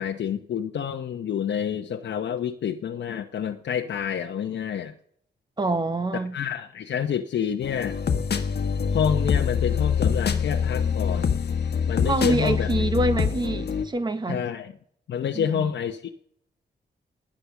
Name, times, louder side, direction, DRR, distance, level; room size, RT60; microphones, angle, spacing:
voice 1, 0.0-4.9 6.3-8.0 8.9-11.3 11.9-12.7 14.3-14.7 15.1-16.1, left 8 dB, 80° left, 1.1 m, -28 dB
voice 2, 5.6-6.3 12.0-14.4 15.3-15.7, right 2 dB, 25° right, 1.3 m, -26 dB
sound 1, 7.6-13.8, left 6 dB, 60° left, 1.4 m, -25 dB
20.0 x 8.7 x 6.2 m
wide cardioid pair, 150°, 18 cm